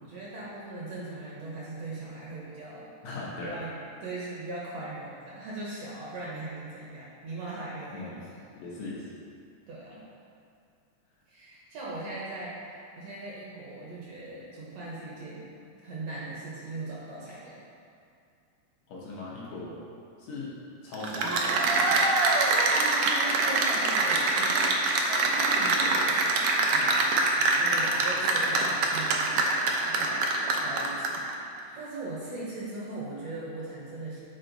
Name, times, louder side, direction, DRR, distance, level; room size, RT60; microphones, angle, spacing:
voice 1, 0.0-2.9 3.4-8.2 9.7-10.0 11.3-15.5 15.8-17.6 22.5-26.3 26.7-31.3 31.8-34.2, right 2 dB, 65° right, -6 dB, 1.8 m, -39 dB
voice 2, 3.0-3.6 7.9-8.3 8.6-9.1 17.3-17.4 18.9-19.8 20.2-20.5 20.8-22.1 31.7-31.8, left 2 dB, 70° left, -6 dB, 1.9 m, -39 dB
Cheering / Applause, 20.9-31.3, right 3 dB, 85° right, 1.5 m, -24 dB
7.8 x 4.3 x 3.9 m, 2.4 s
omnidirectional pair, 3.8 m